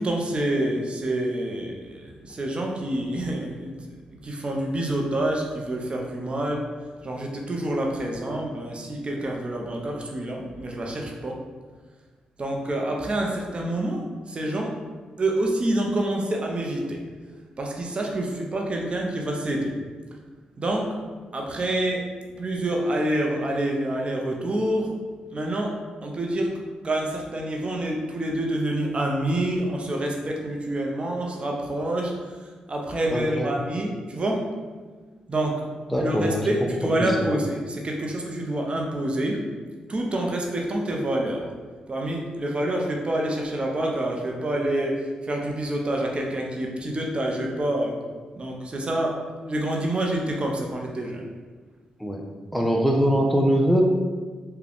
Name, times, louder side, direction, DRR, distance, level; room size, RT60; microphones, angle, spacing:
voice 1, 0.0-3.8 4.2-6.7 7.0-11.4 12.4-14.0 14.3-14.7 15.2-17.0 17.6-19.7 20.6-20.9 21.3-22.0 22.4-24.9 25.3-25.7 26.0-26.5 26.8-32.2 32.7-34.5 35.3-35.6 36.0-39.4 39.9-41.5 41.9-48.0 48.4-49.2 49.5-51.2, right 1 dB, 40° right, 0 dB, 0.7 m, -27 dB
voice 2, 33.1-33.5 35.9-36.5 37.0-37.3 52.0-52.2 52.5-53.8, equal, 5° left, 0 dB, 0.5 m, -22 dB
3.6 x 2.2 x 3.5 m, 1.4 s
supercardioid pair, 50°, 3 cm